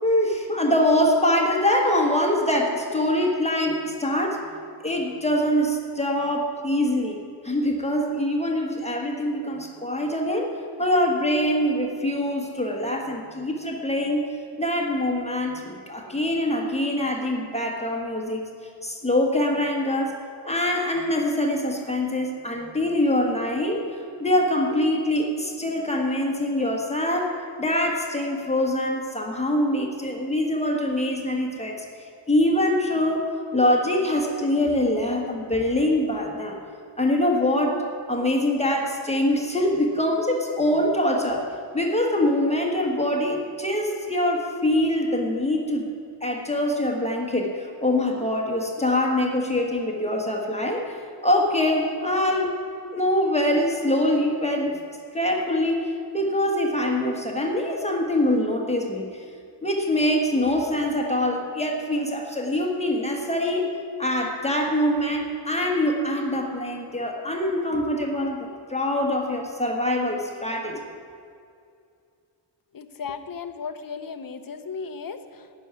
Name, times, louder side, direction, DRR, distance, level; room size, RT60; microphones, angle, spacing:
voice 1, 0.0-4.4 4.8-7.2 7.4-10.5 10.8-14.2 14.6-18.4 18.8-20.1 20.4-23.8 24.2-27.3 27.6-31.8 32.3-33.3 33.5-36.6 37.0-37.8 38.1-41.5 41.7-45.9 46.2-52.5 52.9-54.8 55.1-59.1 59.6-63.7 64.0-70.8, left 1 dB, 15° left, 0 dB, 1.4 m, -24 dB
voice 2, 72.7-75.6, left 5 dB, 50° left, 9 dB, 0.9 m, -36 dB
16.5 x 6.4 x 9.4 m, 2.4 s
wide cardioid pair, 160°, 45 cm